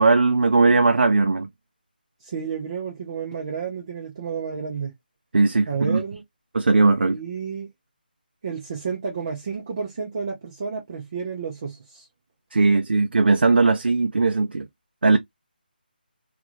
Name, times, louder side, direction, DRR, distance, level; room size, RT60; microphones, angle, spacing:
voice 1, 0.0-1.5 5.3-6.0 6.5-7.2 12.5-14.7 15.0-15.2, right 3 dB, 85° right, 0.5 m, -18 dB
voice 2, 2.2-4.9 5.7-6.2 7.1-7.7 8.4-12.1, right 6 dB, 25° right, 0.4 m, -31 dB
2.4 x 2.2 x 2.8 m
hypercardioid pair, 175°, 5 cm